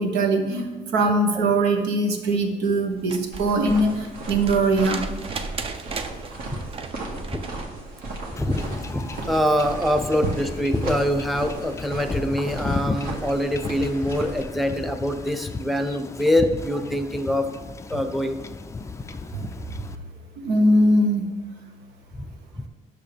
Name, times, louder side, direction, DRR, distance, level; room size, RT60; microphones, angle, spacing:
voice 1, 0.0-5.0 19.3-19.4 20.4-21.2, right 1 dB, 85° right, 4 dB, 1.2 m, -21 dB
sound 1, 2.9-7.8 9.4-9.5, right 4 dB, 35° right, 0.6 m, -37 dB
sound 2, 3.3-14.4, right 2 dB, 60° right, 1.8 m, -36 dB
Wind / Ocean / Boat Water vehicle, 8.4-20.0, left 4 dB, 15° left, 0.3 m, -35 dB
voice 2, 8.4-17.5 17.9-18.4 22.2-22.3 22.5-22.6, equal, ahead, 7 dB, 0.7 m, -24 dB
10.0 x 6.5 x 3.4 m, 1.2 s
cardioid pair, 110°, 17 cm